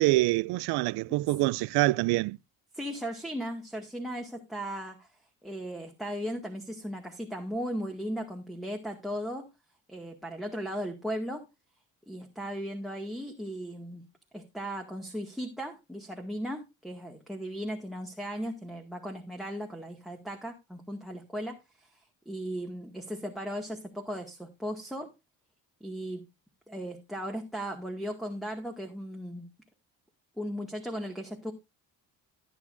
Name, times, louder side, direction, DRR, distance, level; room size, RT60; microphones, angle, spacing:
voice 1, 0.0-2.4, right 20 dB, 80° right, 0.5 m, -25 dB
voice 2, 2.7-5.1 5.4-9.5 9.9-11.4 12.1-14.0 14.3-21.9 22.3-25.1 25.8-26.2 26.7-29.5 30.4-31.5, equal, ahead, 2.0 m, -37 dB
16.0 x 8.5 x 2.6 m
cardioid pair, 80°, 38 cm